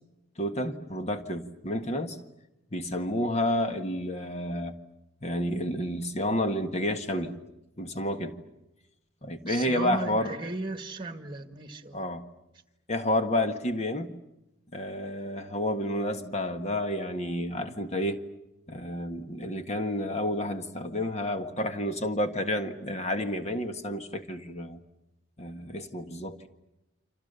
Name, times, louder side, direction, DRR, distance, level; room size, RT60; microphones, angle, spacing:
voice 1, 0.4-2.2 2.7-4.7 5.2-7.4 7.8-8.3 9.2-10.4 11.9-12.2 12.9-14.1 14.7-18.2 18.7-24.8 25.4-26.5, left 1 dB, 35° left, 1.6 m, -30 dB
voice 2, 9.5-12.0, right 2 dB, 25° right, 1.6 m, -35 dB
29.5 x 26.0 x 6.8 m
head